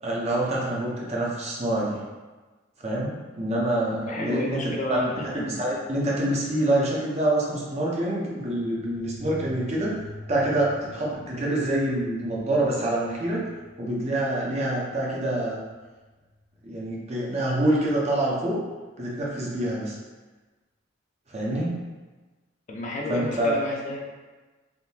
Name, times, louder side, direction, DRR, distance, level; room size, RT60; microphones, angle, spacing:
voice 1, 0.0-2.0 2.8-5.0 5.5-10.0 10.3-13.4 13.8-15.6 16.6-18.6 19.0-19.9 21.3-21.8 23.1-23.5, right 1 dB, 35° right, -4 dB, 0.6 m, -26 dB
voice 2, 3.9-5.7 22.7-24.1, left 1 dB, 40° left, -2 dB, 0.5 m, -31 dB
sound 1, 8.6-16.8, left 2 dB, 70° left, 0.7 m, -46 dB
3.5 x 2.7 x 2.7 m, 1.3 s
head